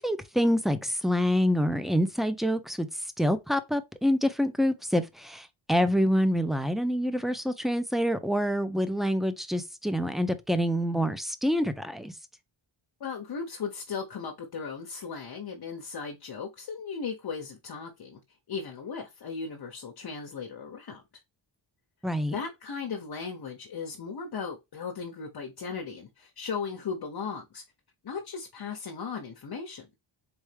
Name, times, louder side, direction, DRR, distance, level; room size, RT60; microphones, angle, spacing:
voice 1, 0.0-2.9 3.2-12.1 22.0-22.3, equal, ahead, 0.6 m, -26 dB
voice 2, 13.0-18.2 18.5-21.0 22.3-27.6 28.0-29.9, left 5 dB, 55° left, 0.9 m, -37 dB
4.2 x 3.5 x 3.3 m
cardioid pair, 90°, 47 cm